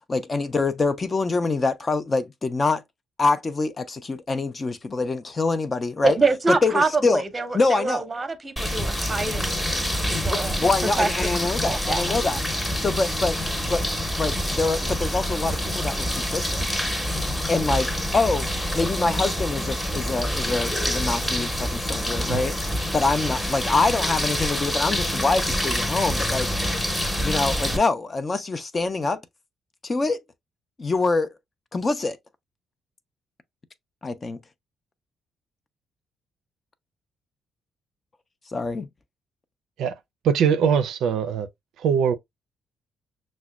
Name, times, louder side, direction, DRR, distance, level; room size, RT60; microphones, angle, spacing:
voice 1, 0.1-2.8 3.2-6.1 6.5-7.2 7.5-8.0 10.1-12.4 12.8-13.8 14.2-16.6 17.5-18.5 18.7-22.6 22.9-26.5 27.2-29.2 29.8-30.2 30.8-31.3 31.7-32.2 34.0-34.4 38.5-38.9, left 3 dB, 30° left, 0.4 m, -25 dB
voice 2, 6.0-9.7 10.1-11.1 11.6-12.0, right 3 dB, 25° right, 0.7 m, -26 dB
sound 1, 8.6-27.8, equal, 15° left, 0.8 m, -26 dB
voice 3, 40.2-41.5 41.8-42.1, right 7 dB, 80° right, 0.4 m, -21 dB
5.9 x 2.1 x 2.2 m
cardioid pair, 90°, 0 cm